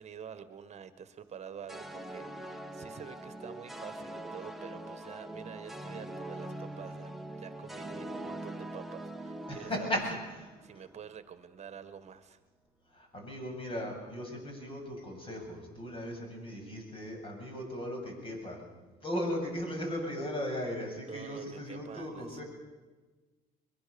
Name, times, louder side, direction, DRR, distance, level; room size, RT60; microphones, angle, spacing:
voice 1, 0.0-10.0 10.6-12.4 21.1-22.4, right 8 dB, 40° right, 12 dB, 1.6 m, -47 dB
sound 1, 1.7-11.0, right 1 dB, ahead, 1.3 m, -43 dB
voice 2, 9.5-10.5 10.7-10.8 12.9-18.6 19.0-22.4, equal, 30° left, 2 dB, 7.8 m, -37 dB
22.5 x 22.5 x 7.1 m, 1.3 s
cardioid pair, 110°, 17 cm